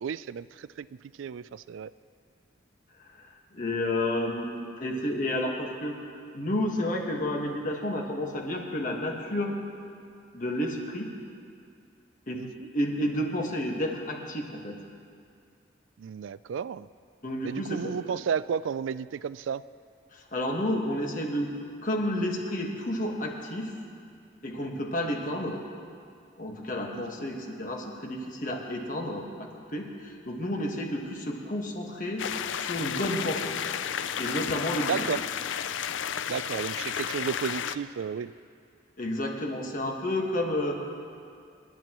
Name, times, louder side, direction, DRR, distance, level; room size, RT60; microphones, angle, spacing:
voice 1, 0.0-0.9 1.2-1.9 12.3-12.7 16.0-16.9 17.4-19.6 26.9-27.3 34.8-35.2 36.3-38.3, right 7 dB, 85° right, 17 dB, 0.3 m, -33 dB
voice 2, 3.5-6.0 6.3-9.5 10.3-11.1 12.3-12.5 12.7-14.8 17.2-18.0 20.1-21.5 21.8-23.7 24.4-25.6 26.4-32.3 32.5-33.5 34.2-35.1 39.0-40.8, left 1 dB, 45° left, 0 dB, 1.6 m, -31 dB
sound 1, 32.2-37.8, left 8 dB, 80° left, 0.4 m, -32 dB
27.5 x 12.0 x 3.1 m, 2.3 s
head